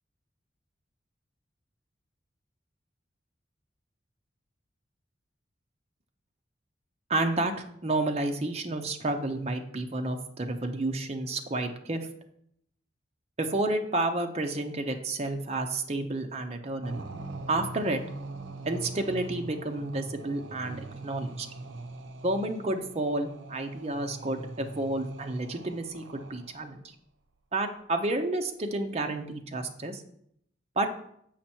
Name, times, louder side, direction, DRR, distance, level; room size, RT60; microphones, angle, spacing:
voice 1, 7.1-7.5 7.8-12.0 13.4-17.0 17.5-18.0 18.6-21.5 22.2-26.8 27.5-30.0 30.8-30.9, right 2 dB, 35° right, 5 dB, 0.6 m, -30 dB
sound 1, 16.8-26.7, right 2 dB, 85° right, 0.7 m, -42 dB
7.4 x 5.4 x 4.4 m, 0.71 s
head